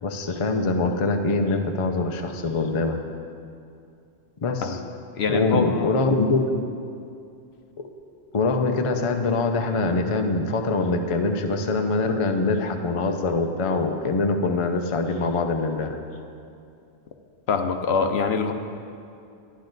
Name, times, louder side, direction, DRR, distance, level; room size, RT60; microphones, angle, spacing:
voice 1, 0.0-3.0 4.4-4.8 5.3-6.6 7.8-7.9 8.3-16.0, left 3 dB, 35° left, 5 dB, 0.6 m, -24 dB
voice 2, 5.1-5.9 17.5-18.5, left 5 dB, 65° left, 6 dB, 0.9 m, -24 dB
12.0 x 10.5 x 4.0 m, 2.5 s
omnidirectional pair, 1.2 m